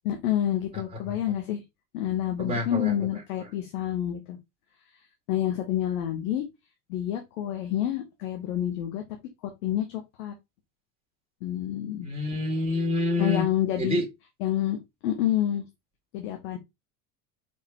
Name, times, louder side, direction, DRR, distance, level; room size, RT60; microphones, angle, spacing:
voice 1, 0.0-1.6 1.9-4.4 5.3-6.4 6.9-9.0 9.4-10.3 11.4-12.1 13.2-14.0 14.4-15.6 16.1-16.6, left 11 dB, 70° left, 1.0 m, -28 dB
voice 2, 2.4-2.9 12.0-13.5 13.8-14.0, left 2 dB, 15° right, 2.0 m, -27 dB
4.4 x 3.7 x 3.0 m
hypercardioid pair, 70°, 44 cm